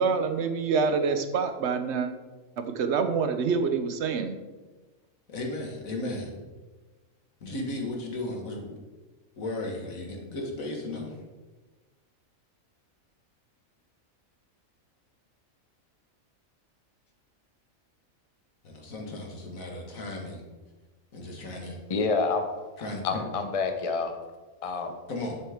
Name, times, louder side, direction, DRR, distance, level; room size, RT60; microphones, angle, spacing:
voice 1, 0.0-2.1 2.6-4.4, right 5 dB, 60° right, 8 dB, 1.0 m, -26 dB
voice 2, 5.3-6.3 7.4-8.8 9.4-11.2 18.6-20.4 21.1-21.8 22.8-23.2 25.1-25.4, left 2 dB, 75° left, 1 dB, 2.0 m, -35 dB
voice 3, 21.9-22.5 22.8-24.1 24.6-24.9, left 4 dB, 30° left, 6 dB, 0.7 m, -28 dB
10.0 x 7.4 x 3.5 m, 1.2 s
omnidirectional pair, 1.4 m